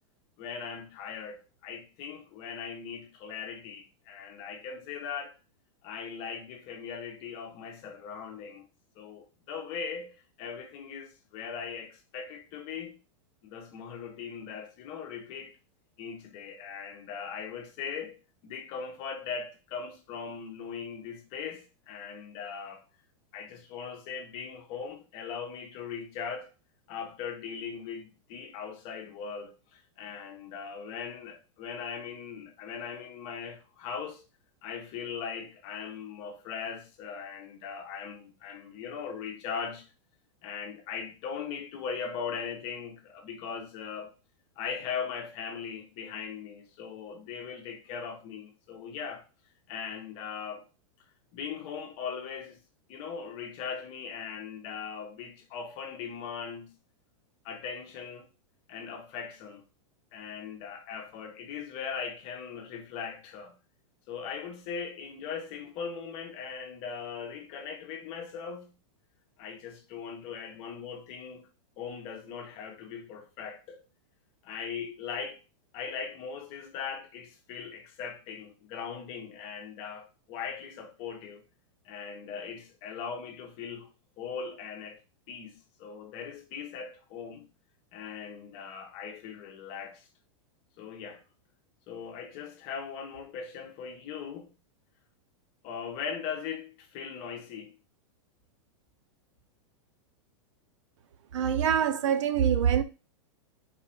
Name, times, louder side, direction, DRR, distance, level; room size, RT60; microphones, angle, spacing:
voice 1, 0.4-5.4 5.8-8.7 9.0-13.0 13.4-15.6 16.0-18.2 18.4-22.8 23.3-26.5 26.9-34.2 34.6-39.9 40.4-44.1 44.6-49.2 49.7-50.6 51.3-52.6 52.9-56.7 57.4-58.3 58.7-59.6 60.1-63.5 64.1-68.7 69.4-71.5 71.8-73.8 74.4-75.4 75.7-81.4 81.8-83.9 84.2-85.0 85.3-87.5 87.9-90.1 90.8-91.2 91.9-94.5 95.6-97.8, left 6 dB, 35° left, 0.9 m, -39 dB
voice 2, 101.3-102.8, right 8 dB, 70° right, 0.6 m, -25 dB
4.2 x 2.5 x 4.3 m
supercardioid pair, 160°, 16 cm